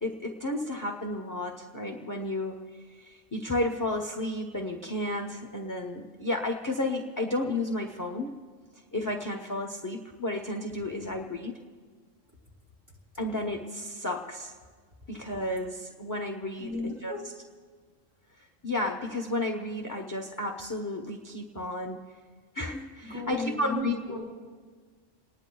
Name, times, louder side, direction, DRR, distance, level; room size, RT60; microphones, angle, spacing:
voice 1, 0.0-8.3 8.9-11.5 13.2-14.5 15.1-17.1 18.4-22.0 22.5-24.2, left 1 dB, 20° left, 2 dB, 0.7 m, -32 dB
voice 2, 16.6-17.3 23.0-24.2, left 1 dB, 20° right, -3 dB, 3.5 m, -35 dB
28.5 x 19.5 x 2.3 m, 1.5 s
omnidirectional pair, 1.3 m